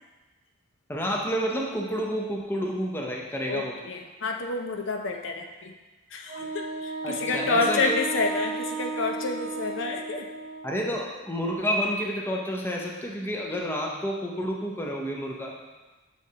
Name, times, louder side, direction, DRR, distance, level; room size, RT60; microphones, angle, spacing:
voice 1, 0.9-3.8 7.0-8.0 10.6-15.6, equal, 10° left, -1 dB, 0.6 m, -29 dB
voice 2, 3.5-5.7 6.1-10.3, left 3 dB, 55° left, 3 dB, 0.5 m, -29 dB
Wind instrument woodwind instrument, 6.3-10.9, right 3 dB, 30° right, 0.7 m, -34 dB
6.6 x 6.4 x 2.8 m, 1.2 s
head